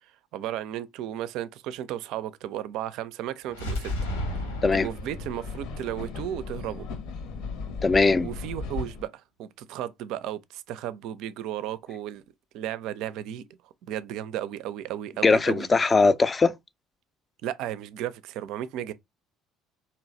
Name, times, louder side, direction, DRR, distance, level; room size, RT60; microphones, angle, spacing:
voice 1, 0.3-3.9 4.7-6.9 8.2-12.2 12.5-13.4 13.8-15.7 17.4-18.9, right 11 dB, 60° right, 0.5 m, -34 dB
sound 1, 3.5-7.3, left 1 dB, 80° left, 1.4 m, -35 dB
sound 2, 4.0-9.1, left 4 dB, 65° left, 1.0 m, -37 dB
voice 2, 7.8-8.3 15.2-16.5, left 4 dB, 25° left, 0.5 m, -20 dB
4.3 x 3.1 x 3.8 m
figure-of-eight pair, 55°, 0 cm